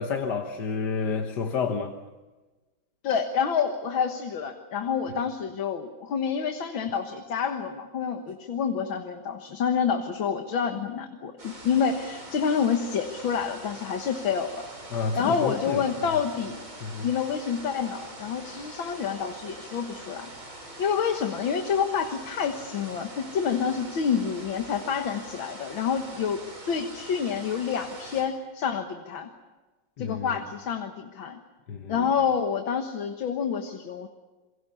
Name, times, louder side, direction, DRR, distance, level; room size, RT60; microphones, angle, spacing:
voice 1, 0.0-1.9 14.9-15.8 16.8-17.1 30.0-30.3 31.7-32.1, left 5 dB, 60° left, 1.7 m, -30 dB
voice 2, 3.0-14.6 15.1-16.7 17.0-20.3 20.8-29.3 30.0-31.4 31.9-34.1, left 7 dB, 80° left, 2.2 m, -28 dB
sound 1, 11.4-28.2, right 2 dB, 90° right, 6.4 m, -43 dB
28.0 x 23.0 x 7.1 m
omnidirectional pair, 2.1 m